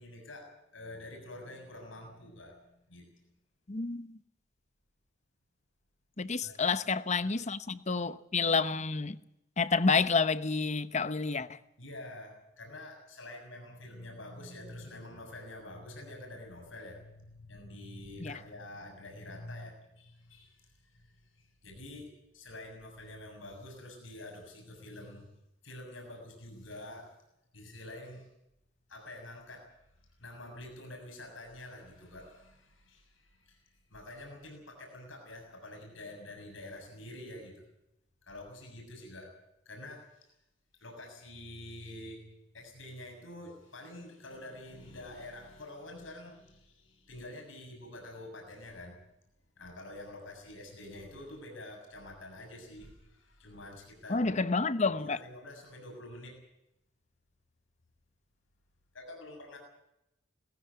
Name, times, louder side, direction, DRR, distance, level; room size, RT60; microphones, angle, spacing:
voice 1, 0.0-3.1 6.4-6.5 7.2-7.3 11.8-25.3 25.6-27.1 27.5-28.3 28.9-29.8 30.2-37.7 38.2-39.3 39.7-40.3 40.8-42.2 42.5-49.0 49.6-54.3 55.0-56.4 58.9-59.6, left 1 dB, 85° left, 6.9 m, -47 dB
voice 2, 3.7-4.2 6.2-9.2 9.6-11.6 18.2-18.4 54.1-55.2, left 4 dB, 40° left, 0.9 m, -29 dB
20.0 x 16.0 x 9.4 m
head